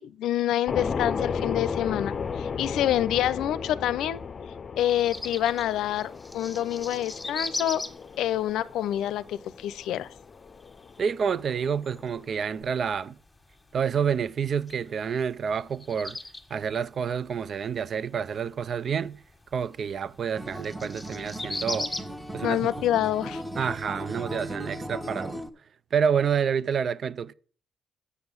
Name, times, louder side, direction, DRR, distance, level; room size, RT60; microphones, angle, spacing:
voice 1, 0.0-4.2 4.8-7.8 8.2-10.1 22.4-23.4, left 12 dB, 85° left, 0.5 m, -27 dB
sound 1, 0.7-12.6, left 5 dB, 40° left, 0.6 m, -35 dB
sound 2, 4.8-24.6, left 2 dB, 15° left, 1.6 m, -41 dB
voice 2, 11.0-13.2 13.7-16.2 16.5-19.2 19.5-21.9 22.3-22.7 23.6-25.4 25.9-27.3, right 7 dB, 55° right, 0.5 m, -28 dB
Acoustic guitar, 20.4-25.5, right 1 dB, 5° right, 1.3 m, -37 dB
8.2 x 6.2 x 7.1 m
cardioid pair, 90°, 0 cm